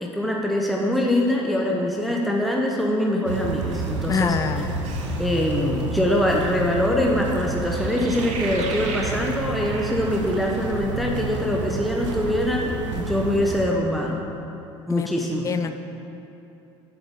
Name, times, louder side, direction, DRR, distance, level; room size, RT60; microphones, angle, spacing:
voice 1, 0.0-4.4 5.2-14.2 14.9-15.5, left 1 dB, ahead, -1 dB, 0.8 m, -23 dB
sound 1, 3.3-13.7, right 3 dB, 80° right, 0.8 m, -30 dB
voice 2, 4.1-4.7 14.9-15.1 15.4-15.7, left 5 dB, 20° left, 9 dB, 0.4 m, -24 dB
sound 2, 4.8-5.5 7.6-10.5, right 4 dB, 50° right, 1.0 m, -36 dB
8.0 x 7.8 x 3.7 m, 2.9 s
hypercardioid pair, 65°, 15 cm